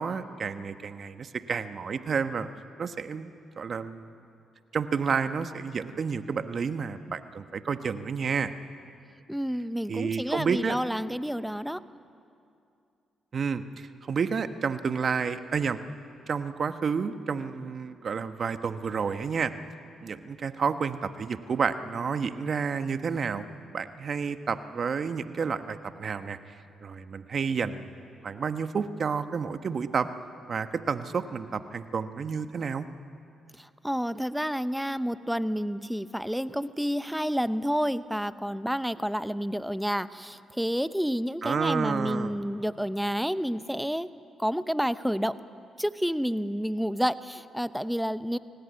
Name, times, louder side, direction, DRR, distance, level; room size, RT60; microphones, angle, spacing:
voice 1, 0.0-2.5 2.8-4.1 4.7-8.5 9.9-10.7 13.3-15.8 16.3-19.5 20.0-23.4 23.7-26.4 26.8-27.9 28.2-30.1 30.5-32.9 41.4-42.4, right 6 dB, 55° right, 10 dB, 1.2 m, -30 dB
voice 2, 9.3-11.8 33.6-44.1 44.4-45.4 45.8-48.4, equal, ahead, 13 dB, 0.8 m, -29 dB
24.5 x 17.5 x 9.5 m, 2.5 s
supercardioid pair, 50°, 0 cm